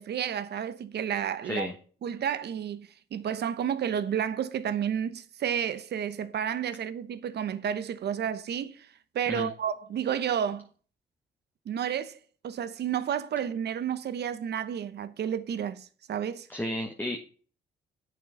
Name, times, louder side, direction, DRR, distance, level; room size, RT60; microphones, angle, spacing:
voice 1, 0.0-1.7 2.0-8.9 9.1-10.7 11.7-16.5, right 9 dB, 65° right, 1.0 m, -31 dB
voice 2, 16.5-17.2, left 1 dB, 10° left, 1.4 m, -32 dB
8.6 x 6.5 x 5.0 m
supercardioid pair, 65°, 19 cm